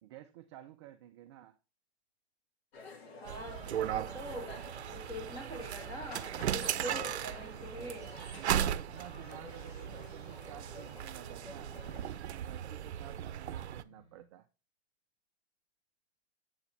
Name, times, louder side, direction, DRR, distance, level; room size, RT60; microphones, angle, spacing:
voice 1, 0.0-1.6 8.4-11.8 12.2-14.5, right 13 dB, 25° right, 0.4 m, -51 dB
sound 1, 2.7-12.2, left 4 dB, 70° left, 1.8 m, -51 dB
voice 2, 3.2-4.6 4.9-8.1, equal, 10° left, 1.6 m, -44 dB
sound 2, 3.2-13.8, right 10 dB, 85° right, 0.6 m, -37 dB
sound 3, 9.2-14.2, left 2 dB, 45° left, 3.5 m, -63 dB
7.9 x 4.8 x 3.2 m
hypercardioid pair, 145°, 33 cm